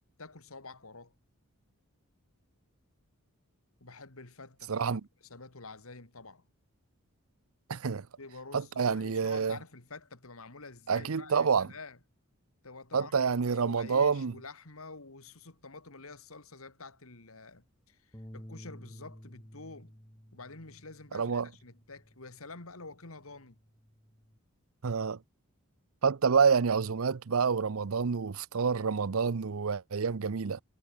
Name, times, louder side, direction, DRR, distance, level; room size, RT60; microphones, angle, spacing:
voice 1, 0.2-1.1 3.8-6.4 7.7-7.8 8.2-12.0 12.6-20.0 20.3-23.6, left 3 dB, 70° left, 2.5 m, -48 dB
voice 2, 4.7-5.0 7.7-8.1 8.5-9.6 10.9-11.7 12.9-14.3 21.1-21.5 24.8-25.2 26.0-30.6, right 5 dB, 70° right, 0.6 m, -28 dB
Bass guitar, 18.1-22.6 23.0-24.4, equal, 15° left, 3.7 m, -52 dB
head